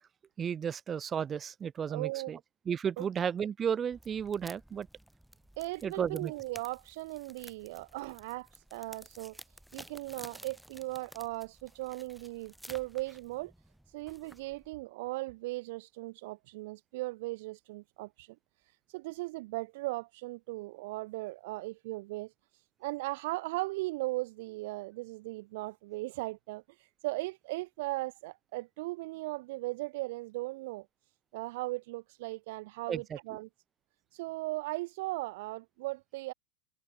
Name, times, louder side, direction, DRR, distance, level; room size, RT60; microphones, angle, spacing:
voice 1, 0.4-2.4 2.7-4.9 5.8-6.3 32.9-33.0, right 7 dB, 20° right, 0.8 m, -33 dB
voice 2, 1.9-2.4 3.0-3.1 5.6-9.4 9.7-13.5 13.9-18.4 18.9-22.3 22.8-30.9 31.3-33.5 34.1-36.3, right 21 dB, 50° right, 0.4 m, -38 dB
sound 1, 3.9-14.7, right 1 dB, ahead, 1.8 m, -54 dB
figure-of-eight pair, 90°, 0 cm